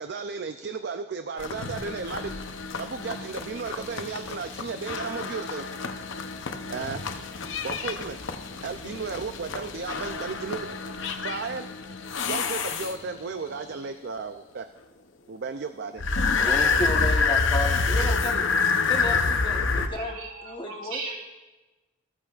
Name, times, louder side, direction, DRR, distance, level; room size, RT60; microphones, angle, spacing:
voice 1, 0.0-2.3 2.8-5.7 6.7-7.0 7.6-8.2 8.6-10.8 11.2-11.7 12.3-14.7 15.3-16.0, right 5 dB, 50° right, 8 dB, 0.4 m, -34 dB
sound 1, 1.4-13.3 16.0-19.9, left 4 dB, 60° left, 0.7 m, -28 dB
voice 2, 16.4-18.4 18.9-21.0, left 1 dB, 25° left, 1 dB, 1.1 m, -32 dB
voice 3, 19.9-21.2, right 4 dB, 70° right, 0 dB, 2.6 m, -37 dB
14.5 x 14.0 x 2.4 m, 1.1 s
head